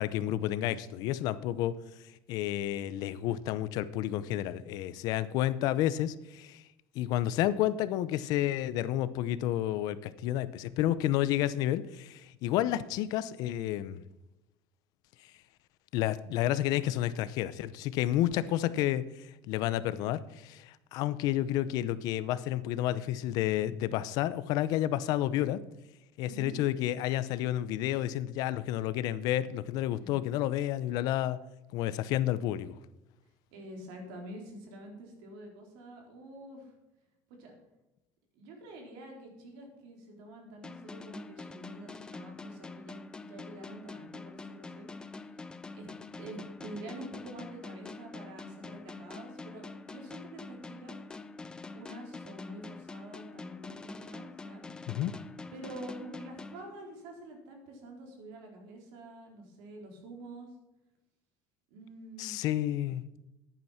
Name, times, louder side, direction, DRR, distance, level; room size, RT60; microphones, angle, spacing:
voice 1, 0.0-1.7 2.3-6.6 6.9-14.0 15.9-25.6 26.2-31.4 31.7-32.8 54.9-55.1 62.2-63.0, left 13 dB, 60° left, 15 dB, 0.7 m, -30 dB
voice 2, 26.2-26.6 30.0-30.2 32.2-32.3 33.5-36.7 37.3-37.6 38.4-45.3 45.7-45.9 46.2-51.0 51.7-54.6 55.5-60.5 61.7-62.4, right 1 dB, 90° right, 2 dB, 4.1 m, -47 dB
sound 1, 40.6-57.2, left 3 dB, 10° left, 0.5 m, -45 dB
11.0 x 9.0 x 5.8 m, 0.93 s
cardioid pair, 170°, 7 cm